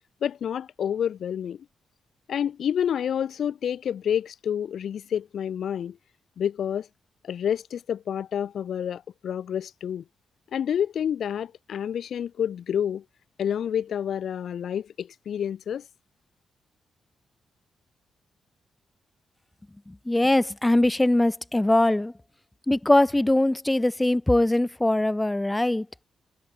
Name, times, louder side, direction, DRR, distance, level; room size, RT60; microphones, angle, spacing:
voice 1, 0.2-1.6 2.3-6.0 6.4-6.9 7.2-10.0 10.5-13.0 13.4-15.8, left 9 dB, 60° left, 3.4 m, -28 dB
voice 2, 20.1-22.1 22.7-25.8, left 1 dB, 10° left, 3.4 m, -21 dB
wide cardioid pair, 160°, 0 cm